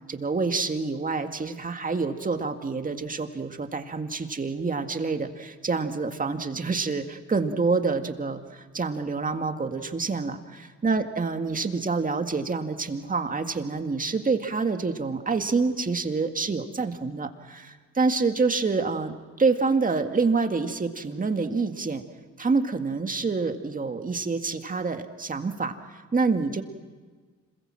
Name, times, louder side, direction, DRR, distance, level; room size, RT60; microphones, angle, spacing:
voice 1, 0.1-22.0 22.4-26.6, right 4 dB, 25° right, 6 dB, 2.0 m, -27 dB
27.0 x 22.0 x 7.7 m, 1.5 s
cardioid pair, 90°, 30 cm